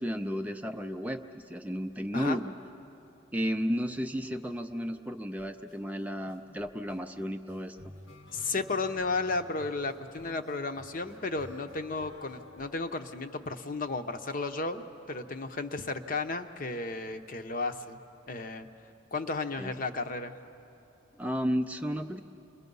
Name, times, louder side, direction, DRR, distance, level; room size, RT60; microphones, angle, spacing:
voice 1, 0.0-2.5 3.3-7.8 19.6-19.7 21.2-22.2, equal, 10° right, 6 dB, 0.5 m, -33 dB
sound 1, 5.4-5.8 6.3-13.5, left 2 dB, 90° left, 1.5 m, -52 dB
voice 2, 8.3-18.0 18.3-18.7 19.1-20.3, left 3 dB, 45° left, 8 dB, 0.8 m, -33 dB
28.0 x 22.0 x 5.4 m, 2.8 s
head